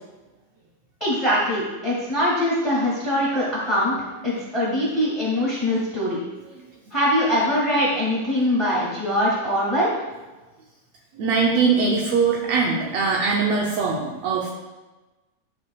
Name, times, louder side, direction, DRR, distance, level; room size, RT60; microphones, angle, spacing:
voice 1, 1.0-4.0 4.2-6.2 6.9-9.9, equal, 10° left, -6 dB, 1.7 m, -22 dB
voice 2, 11.1-14.5, right 4 dB, 70° right, -2 dB, 1.7 m, -21 dB
12.0 x 5.7 x 2.3 m, 1.2 s
omnidirectional pair, 3.5 m